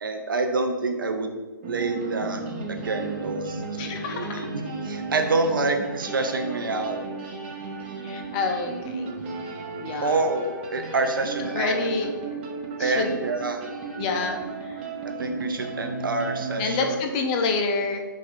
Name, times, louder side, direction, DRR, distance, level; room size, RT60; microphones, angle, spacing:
voice 1, 0.0-1.3 1.7-2.4 2.7-3.8 4.1-7.0 10.0-12.1 12.8-13.6 15.2-17.0, right 3 dB, 75° right, 6 dB, 0.6 m, -27 dB
sound 1, 1.6-16.8, right 3 dB, 30° right, 0.6 m, -34 dB
voice 2, 3.8-4.5 8.0-9.1 9.8-10.2 11.4-12.1 12.8-13.2 13.9-14.8 16.6-18.1, left 4 dB, 20° left, 4 dB, 0.3 m, -28 dB
4.0 x 2.4 x 4.3 m, 1.3 s
hypercardioid pair, 140°, 11 cm